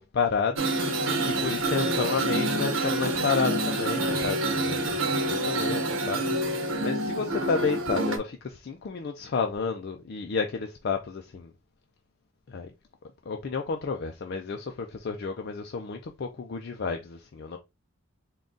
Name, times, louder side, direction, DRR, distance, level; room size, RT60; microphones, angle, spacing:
voice 1, 0.0-11.5 12.5-12.7 13.3-17.6, left 5 dB, 55° left, 0.4 m, -31 dB
sound 1, 0.6-8.2, right 2 dB, 75° right, 0.8 m, -27 dB
3.9 x 2.3 x 3.6 m
head